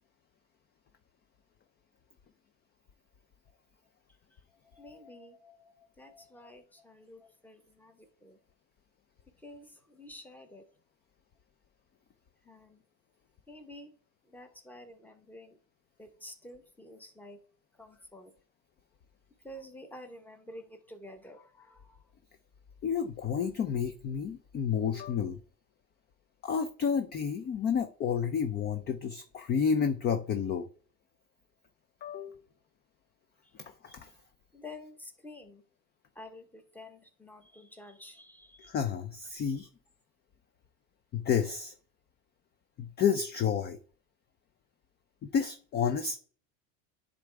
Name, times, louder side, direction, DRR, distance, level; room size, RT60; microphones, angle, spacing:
voice 1, 4.7-8.4 9.4-10.6 12.4-12.8 13.5-13.9 14.3-15.6 16.0-17.4 17.8-18.3 19.4-22.1 34.5-35.6 36.2-38.7, left 1 dB, 5° left, 0.9 m, -50 dB
voice 2, 22.8-25.4 26.4-30.7 32.0-32.4 33.6-34.1 38.7-39.7 41.1-41.7 42.8-43.8 45.2-46.2, left 7 dB, 25° left, 0.5 m, -30 dB
9.9 x 3.7 x 3.4 m
supercardioid pair, 125°, 41 cm